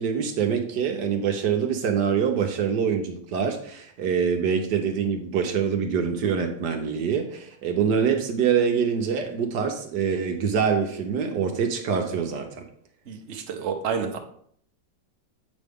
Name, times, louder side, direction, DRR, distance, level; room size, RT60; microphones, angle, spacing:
voice 1, 0.0-12.6, right 7 dB, 70° right, 5 dB, 1.3 m, -25 dB
voice 2, 13.1-14.2, right 6 dB, 50° right, 3 dB, 1.0 m, -29 dB
8.4 x 5.2 x 3.5 m, 0.64 s
omnidirectional pair, 2.0 m